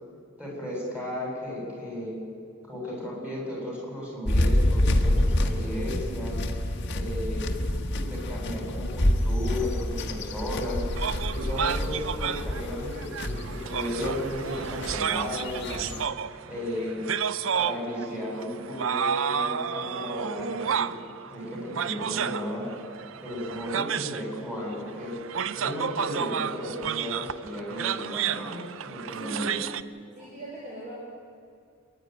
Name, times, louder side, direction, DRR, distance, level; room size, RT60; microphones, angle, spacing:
voice 1, 0.4-2.2 2.6-6.4 6.9-7.5 7.9-10.8 11.3-16.0 16.5-17.0 17.5-20.9 21.3-22.7 23.2-25.2 25.6-29.5 30.2-30.3, left 1 dB, 5° right, -4 dB, 7.7 m, -34 dB
sound 1, 4.2-16.1, left 1 dB, 60° left, 1.6 m, -28 dB
sound 2, 11.0-29.8, right 7 dB, 70° right, 0.5 m, -32 dB
voice 2, 28.9-29.5 30.1-30.9, right 1 dB, 40° right, -6 dB, 4.6 m, -41 dB
26.5 x 11.0 x 9.5 m, 2.3 s
head